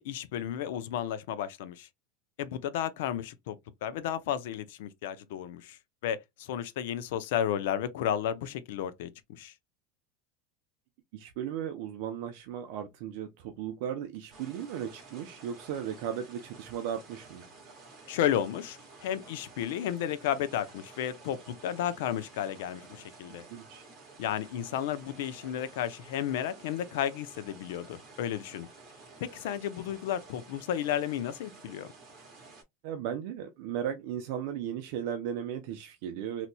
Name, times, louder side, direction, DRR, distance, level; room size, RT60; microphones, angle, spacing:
voice 1, 0.0-1.9 2.4-5.8 6.0-9.5 18.1-23.4 24.2-28.7 29.2-31.9, left 10 dB, 70° left, 0.5 m, -33 dB
voice 2, 11.1-17.4 23.5-23.8 32.8-36.5, right 9 dB, 55° right, 0.6 m, -36 dB
sound 1, 14.3-32.6, right 3 dB, 30° right, 1.5 m, -52 dB
4.0 x 2.9 x 2.2 m
supercardioid pair, 165°, 0 cm